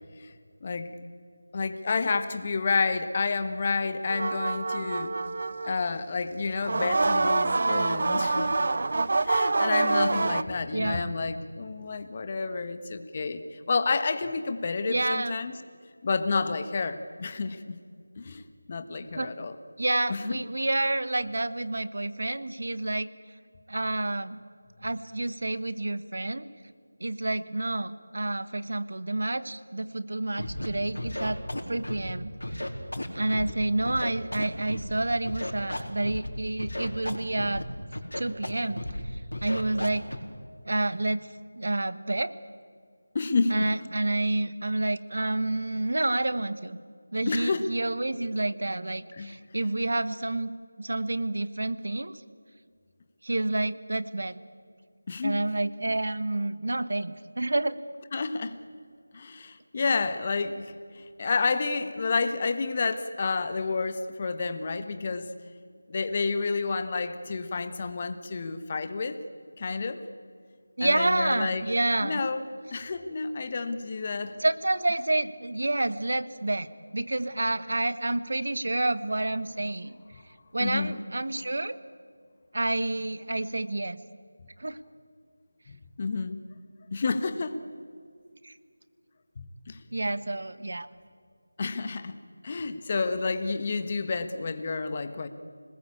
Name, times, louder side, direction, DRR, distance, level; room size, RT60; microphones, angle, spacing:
voice 1, 0.6-0.9 1.5-5.1 5.6-8.8 9.2-15.5 16.0-17.8 18.2-18.4 18.7-19.6 20.1-20.4 43.1-43.7 47.2-47.7 49.1-49.3 55.1-55.4 58.1-58.5 59.1-65.3 65.9-69.2 69.6-70.0 70.8-71.7 72.0-74.4 74.9-75.0 80.6-81.0 85.7-86.4 86.9-87.5 89.4-90.1 91.6-92.2 92.4-95.3, left 4 dB, 30° left, 10 dB, 1.4 m, -30 dB
sound 1, 4.1-5.9 6.6-10.4, right 3 dB, 45° right, 0.7 m, -26 dB
voice 2, 10.7-11.1 14.8-15.4 19.1-19.3 19.8-23.1 23.7-24.4 24.8-26.5 27.0-31.4 31.7-32.3 33.1-37.6 38.1-38.8 39.4-40.0 40.6-41.3 41.6-42.3 43.5-46.8 47.1-50.5 50.8-52.1 53.2-54.4 55.2-57.8 70.8-72.2 74.4-76.7 76.9-79.9 80.5-81.8 82.5-84.0 84.6-84.8 88.4-88.5 89.9-90.9, right 2 dB, 60° right, 14 dB, 1.4 m, -29 dB
Scratching (performance technique), 30.4-30.7 30.9-32.1 32.4-33.5 33.8-34.9 35.2-36.3 36.6-37.6 37.9-38.5 38.8-39.0 39.3-40.1, left 1 dB, 80° left, 4.4 m, -34 dB
27.0 x 20.0 x 8.7 m, 2.1 s
figure-of-eight pair, 170°, 0 cm